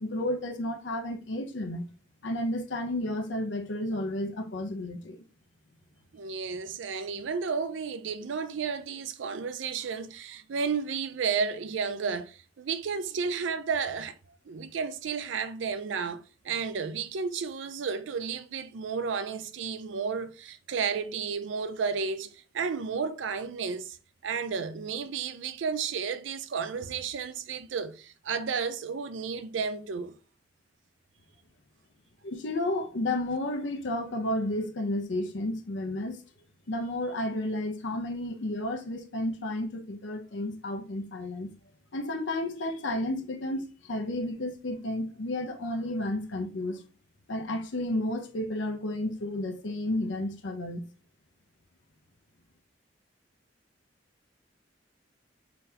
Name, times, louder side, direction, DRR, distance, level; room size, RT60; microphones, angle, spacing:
voice 1, 0.0-1.8 2.2-5.2 32.2-36.2 36.7-41.5 41.9-46.8 47.3-50.8, left 1 dB, 75° left, 0.7 m, -32 dB
voice 2, 6.1-14.1 14.5-24.0 24.2-30.2, right 5 dB, 85° right, 0.4 m, -32 dB
3.9 x 2.8 x 3.3 m
head